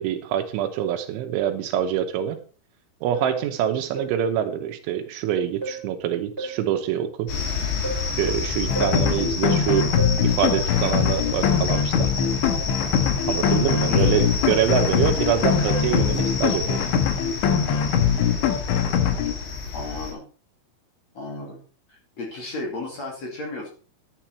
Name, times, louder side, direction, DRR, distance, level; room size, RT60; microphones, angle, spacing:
voice 1, 0.0-2.4 3.0-7.3 8.2-9.9 10.2-12.1 13.3-16.9, right 10 dB, 75° right, 7 dB, 3.2 m, -25 dB
sound 1, 3.1-3.5 4.0-4.3 5.6-5.9 6.4-6.7 7.8-8.2 8.8-9.1 10.0-10.3 12.5-12.8 13.3-13.5, right 2 dB, 15° right, 4.4 m, -33 dB
sound 2, 7.3-20.1, left 5 dB, 60° left, 4.6 m, -29 dB
sound 3, 8.7-19.3, left 8 dB, 75° left, 3.5 m, -22 dB
voice 2, 13.8-14.3 19.2-19.3 19.7-20.2 21.1-21.6 21.9-23.7, left 3 dB, 40° left, -1 dB, 3.0 m, -33 dB
11.5 x 10.0 x 4.4 m, 0.40 s
omnidirectional pair, 5.7 m